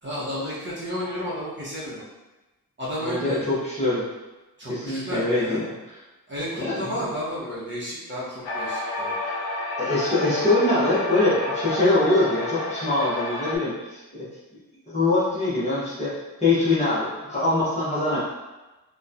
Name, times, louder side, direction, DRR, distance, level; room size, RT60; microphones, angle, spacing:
voice 1, 0.0-2.0 2.8-3.4 4.6-5.6 6.3-9.2, equal, 30° right, -9 dB, 0.7 m, -32 dB
voice 2, 3.0-4.0 4.7-5.7 6.6-6.8 9.8-14.2 14.9-16.1 16.4-18.2, left 2 dB, 20° left, -10 dB, 0.8 m, -23 dB
sound 1, 8.4-13.6, left 2 dB, 90° left, 0.6 m, -30 dB
2.8 x 2.1 x 2.4 m, 1.1 s
wide cardioid pair, 165°, 36 cm